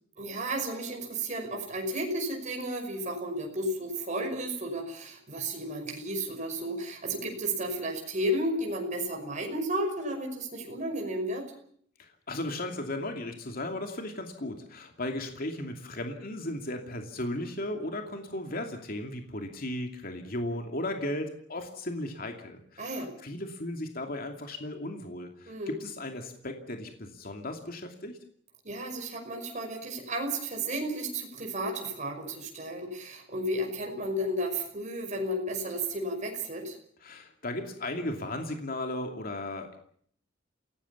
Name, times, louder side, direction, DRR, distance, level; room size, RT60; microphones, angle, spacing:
voice 1, 0.2-11.5 22.8-23.1 25.5-25.8 28.6-36.7, right 1 dB, 40° right, 2 dB, 5.7 m, -33 dB
voice 2, 12.0-28.2 37.0-39.8, left 1 dB, 50° left, 4 dB, 2.6 m, -36 dB
29.0 x 17.5 x 7.2 m, 0.62 s
head